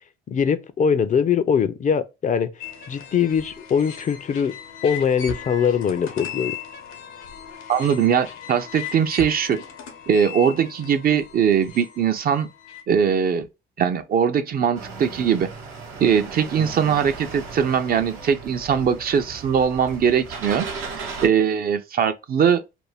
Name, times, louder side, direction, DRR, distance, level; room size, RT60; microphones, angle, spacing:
voice 1, 0.3-2.5 2.9-4.6 4.8-6.6, left 7 dB, 40° left, 0.4 m, -22 dB
sound 1, 2.6-12.8, left 7 dB, 80° left, 0.7 m, -37 dB
voice 2, 7.7-9.6 10.1-12.5 12.9-13.5 13.8-15.5 16.0-20.7 20.9-22.6, right 7 dB, 45° right, 0.5 m, -21 dB
sound 2, 14.7-21.3, right 4 dB, 80° right, 0.8 m, -36 dB
2.5 x 2.1 x 3.2 m
supercardioid pair, 60°, 21 cm